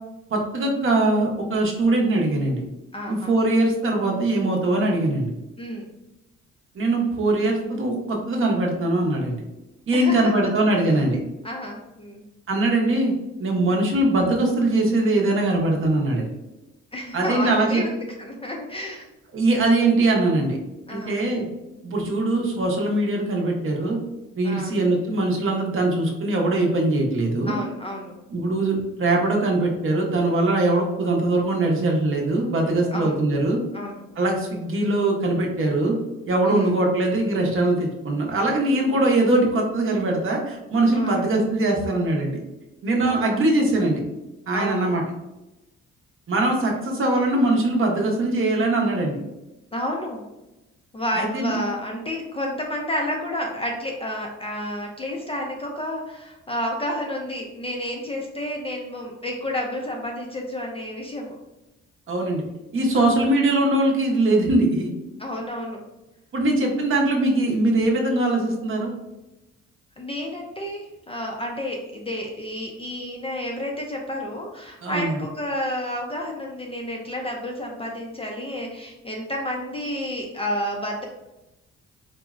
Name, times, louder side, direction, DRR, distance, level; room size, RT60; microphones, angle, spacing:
voice 1, 0.3-2.6 3.1-5.3 6.7-9.4 9.9-11.2 12.5-13.1 13.4-16.3 17.1-17.8 19.3-20.6 20.9-21.5 21.8-24.0 24.4-27.6 28.3-33.6 34.2-35.9 36.3-42.4 42.8-44.0 44.5-45.0 46.3-49.2 51.1-51.5 62.1-62.4 62.7-64.9 66.3-68.9 74.8-75.2, right 2 dB, 45° right, 0 dB, 0.7 m, -21 dB
voice 2, 2.9-3.4 5.6-5.9 9.9-10.3 11.4-12.2 16.9-17.9 18.2-19.1 20.9-21.3 24.4-24.8 27.5-28.1 32.9-33.2 33.7-34.0 36.4-36.7 40.9-41.3 43.1-43.4 44.5-44.9 49.7-50.2 50.9-61.4 62.9-63.1 65.2-65.8 70.0-81.0, left 1 dB, 20° left, 0 dB, 0.4 m, -30 dB
3.7 x 2.0 x 2.4 m, 0.97 s
cardioid pair, 90°, 30 cm